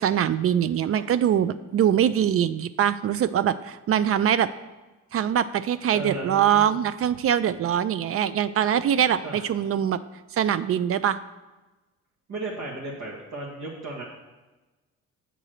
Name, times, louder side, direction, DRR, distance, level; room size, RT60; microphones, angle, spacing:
voice 1, 0.0-4.5 5.1-10.0 10.4-11.2, right 9 dB, 50° right, 14 dB, 0.4 m, -23 dB
voice 2, 5.9-6.7 9.2-9.4 12.3-14.0, right 2 dB, 65° right, -4 dB, 1.5 m, -35 dB
7.6 x 3.9 x 6.4 m, 1.1 s
cardioid pair, 90°, 30 cm